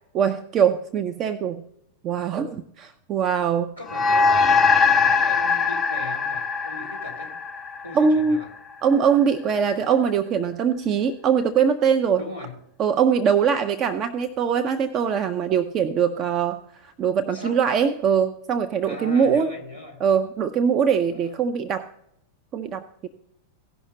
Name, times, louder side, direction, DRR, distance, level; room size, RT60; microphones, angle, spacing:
voice 1, 0.1-1.7 2.0-3.7 7.9-8.4 8.8-12.2 12.8-19.5 20.0-21.9 22.5-23.1, right 7 dB, 30° right, 8 dB, 0.5 m, -22 dB
voice 2, 3.8-7.3 7.8-8.5 12.1-12.6 17.3-17.6 18.8-20.0 21.2-21.3, left 1 dB, 90° right, -2 dB, 3.1 m, -38 dB
sound 1, 3.9-8.6, left 5 dB, 20° left, 0.5 m, -21 dB
16.5 x 5.7 x 3.8 m, 0.77 s
figure-of-eight pair, 90°, 0 cm